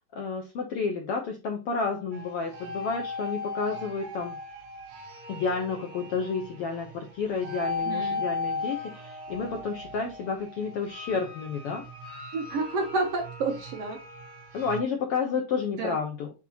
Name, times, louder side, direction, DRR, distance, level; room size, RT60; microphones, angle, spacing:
voice 1, 0.1-4.4 5.3-11.8 14.5-16.3, left 5 dB, 90° left, 3 dB, 1.3 m, -31 dB
sound 1, 2.1-14.8, left 3 dB, 50° right, 1.9 m, -37 dB
voice 2, 7.8-8.2 12.3-14.0 15.8-16.0, right 3 dB, 65° right, 3 dB, 1.6 m, -30 dB
8.7 x 2.9 x 4.1 m, 0.29 s
omnidirectional pair, 4.0 m